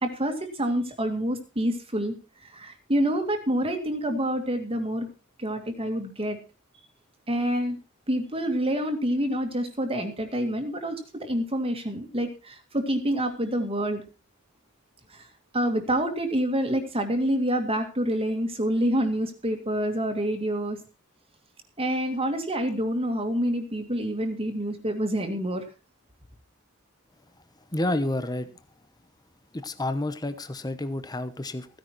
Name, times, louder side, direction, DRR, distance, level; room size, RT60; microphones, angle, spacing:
voice 1, 0.0-2.1 2.5-5.1 5.4-6.4 7.3-7.8 8.1-14.0 15.1-15.2 15.5-20.8 21.8-25.6, equal, 25° right, 5 dB, 2.3 m, -27 dB
voice 2, 27.7-28.6 29.5-31.7, left 1 dB, 20° left, 11 dB, 0.9 m, -29 dB
15.5 x 10.5 x 4.5 m, 0.31 s
head